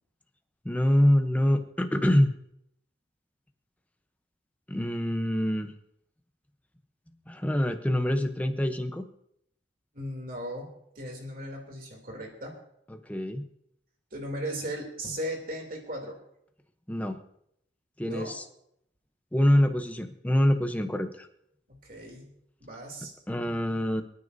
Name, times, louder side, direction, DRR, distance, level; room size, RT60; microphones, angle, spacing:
voice 1, 0.6-2.3 4.7-5.7 7.3-9.1 12.9-13.5 16.9-17.2 18.0-18.4 19.3-21.3 23.3-24.0, equal, 10° left, 6 dB, 0.8 m, -25 dB
voice 2, 9.9-12.6 14.1-16.2 18.0-18.3 21.7-22.3 22.6-23.1, equal, 50° right, 1 dB, 3.0 m, -37 dB
28.5 x 9.5 x 2.7 m, 0.75 s
head